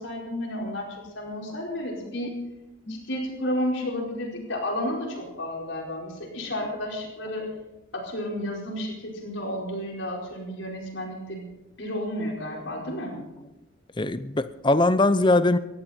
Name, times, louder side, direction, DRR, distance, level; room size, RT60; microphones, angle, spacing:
voice 1, 0.0-2.3 2.9-7.5 7.9-11.4 11.8-13.1, left 1 dB, 65° left, 4.7 m, -32 dB
voice 2, 14.0-15.6, left 2 dB, 25° left, 0.6 m, -21 dB
18.5 x 14.0 x 4.4 m
head